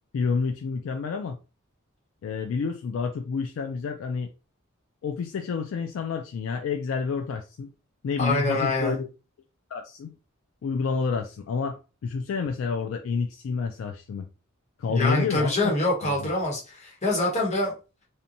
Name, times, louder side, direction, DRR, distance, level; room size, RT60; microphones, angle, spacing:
voice 1, 0.1-1.4 2.2-4.3 5.0-7.7 8.0-9.1 9.7-10.2 10.6-14.3 14.8-15.7 16.0-16.3, left 5 dB, 70° left, 0.3 m, -29 dB
voice 2, 8.2-8.9 14.9-17.7, left 2 dB, 35° left, 1.0 m, -25 dB
2.8 x 2.2 x 2.6 m
head